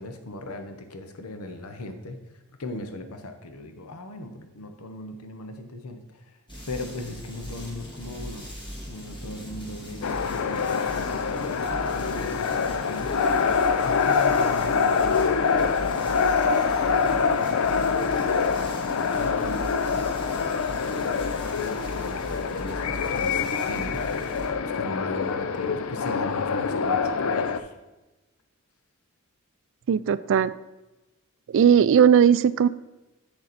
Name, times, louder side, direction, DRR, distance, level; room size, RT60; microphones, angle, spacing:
voice 1, 0.0-2.2 2.6-6.2 6.7-8.5 8.9-13.1 13.8-16.1 16.4-16.7 17.0-18.1 19.2-27.7, left 2 dB, 85° left, 6 dB, 0.9 m, -39 dB
sound 1, 6.5-24.5, equal, 20° left, 2.0 m, -39 dB
sound 2, 10.0-27.6, left 5 dB, 70° left, 0.5 m, -25 dB
voice 2, 29.9-30.5 31.5-32.7, right 8 dB, 60° right, 16 dB, 0.3 m, -18 dB
7.7 x 6.6 x 4.1 m, 1.1 s
head